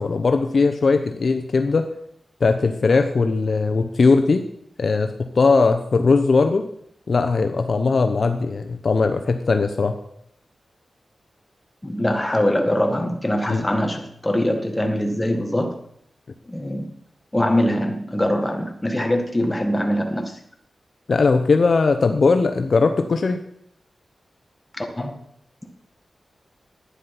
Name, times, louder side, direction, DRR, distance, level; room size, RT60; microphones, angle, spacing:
voice 1, 0.0-1.8 2.4-4.4 4.8-6.6 7.1-10.0 13.5-13.7 21.1-23.4, left 4 dB, 55° left, 7 dB, 0.9 m, -19 dB
voice 2, 11.8-15.8 16.5-16.9 17.3-20.4 24.8-25.2, left 1 dB, 15° left, 4 dB, 1.8 m, -23 dB
11.5 x 9.6 x 5.9 m, 0.72 s
wide cardioid pair, 100°, 0 cm